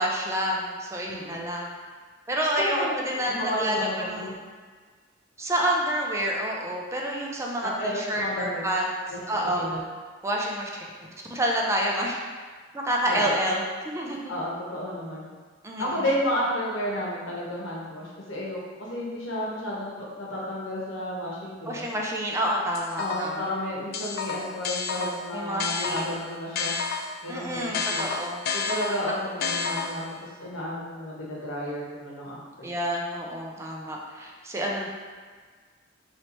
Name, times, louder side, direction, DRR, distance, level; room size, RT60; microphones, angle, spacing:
voice 1, 0.0-1.7 2.3-4.3 5.4-8.9 9.3-9.7 10.2-10.7 11.3-12.2 12.7-14.3 15.6-15.8 21.7-23.4 25.3-26.2 27.3-28.4 32.6-34.9, equal, 15° right, -1 dB, 0.4 m, -28 dB
voice 2, 1.1-1.5 2.6-2.9 3.3-4.3 7.6-8.6 9.1-9.8 13.1-13.4 14.3-15.3 15.8-21.8 23.0-26.7 27.2-28.1 28.5-30.1 30.4-32.7, equal, 85° left, -4 dB, 1.0 m, -32 dB
sound 1, 22.7-23.5 23.9-27.3 27.7-30.2, left 5 dB, 55° left, 0.3 m, -31 dB
3.2 x 2.8 x 4.3 m, 1.5 s
head